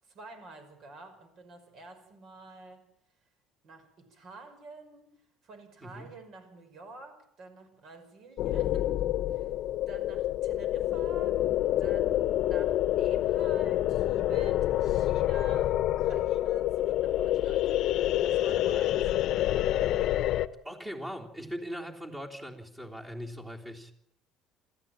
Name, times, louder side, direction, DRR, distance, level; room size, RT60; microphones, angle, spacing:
voice 1, 0.0-2.9 3.6-5.2 5.4-9.5 9.9-11.5 11.8-17.7 18.2-19.1 19.4-19.6, right 3 dB, 50° right, 5.6 m, -49 dB
sound 1, 8.4-20.5, left 13 dB, 60° left, 1.0 m, -27 dB
voice 2, 20.6-23.9, equal, 15° right, 3.5 m, -40 dB
28.0 x 14.0 x 9.0 m
cardioid pair, 135°, 0 cm